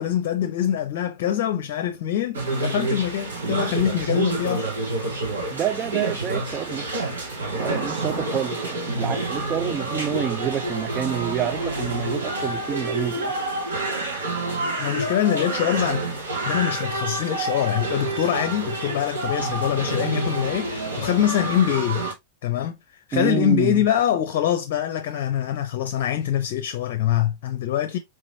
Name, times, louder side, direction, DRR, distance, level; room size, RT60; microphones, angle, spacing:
voice 1, 0.0-4.7 14.8-16.0 16.4-22.0 22.4-22.8 23.1-28.0, left 11 dB, 50° left, 0.5 m, -24 dB
sound 1, 2.3-22.1, right 2 dB, 70° right, 1.3 m, -28 dB
voice 2, 5.5-7.2 7.5-13.3 23.1-23.9, right 9 dB, 30° right, 0.3 m, -28 dB
4.6 x 3.0 x 2.7 m
figure-of-eight pair, 90°, 0 cm